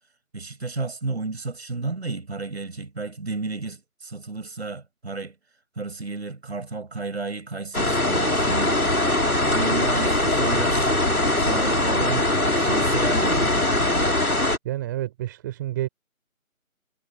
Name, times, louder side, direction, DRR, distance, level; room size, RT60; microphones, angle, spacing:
voice 1, 0.3-5.3 5.8-8.9 9.5-10.9 11.4-12.3 12.6-13.5, right 3 dB, 50° right, 7.0 m, -32 dB
sound 1, 7.7-14.6, left 1 dB, 90° left, 2.4 m, -21 dB
voice 2, 14.6-15.9, right 14 dB, 15° right, 4.7 m, -29 dB
figure-of-eight pair, 155°, 42 cm